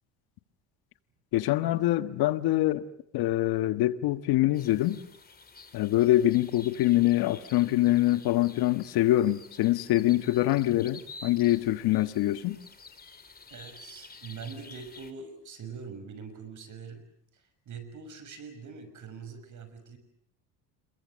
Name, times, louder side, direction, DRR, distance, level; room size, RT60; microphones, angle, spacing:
voice 1, 1.3-2.9 3.1-5.0 5.7-12.6, left 15 dB, 65° left, 1.5 m, -24 dB
sound 1, 4.5-15.1, left 3 dB, 25° left, 3.3 m, -50 dB
voice 2, 13.5-17.0 17.3-20.0, right 5 dB, 50° right, 6.1 m, -43 dB
28.0 x 22.5 x 7.6 m
supercardioid pair, 100°, 39 cm